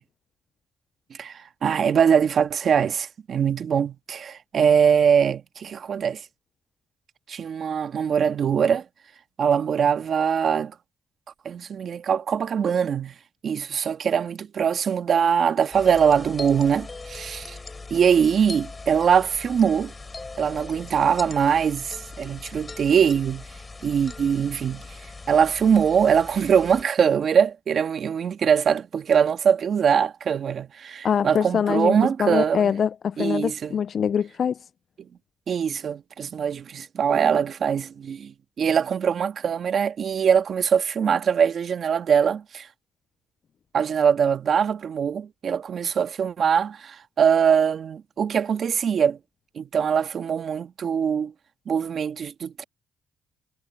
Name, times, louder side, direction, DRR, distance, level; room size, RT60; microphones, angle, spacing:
voice 1, 1.2-6.2 7.3-8.8 9.4-10.7 11.4-13.1 13.4-17.6 17.9-19.9 20.4-23.4 23.8-24.8 25.3-32.7 33.2-33.8 35.5-42.7 43.7-49.2 49.5-51.3 51.7-52.6, right 7 dB, 55° right, 1.5 m, -22 dB
sound 1, 15.7-26.8, left 3 dB, 25° left, 3.9 m, -40 dB
voice 2, 31.0-34.6, left 7 dB, 55° left, 0.3 m, -24 dB
cardioid pair, 90°, 0 cm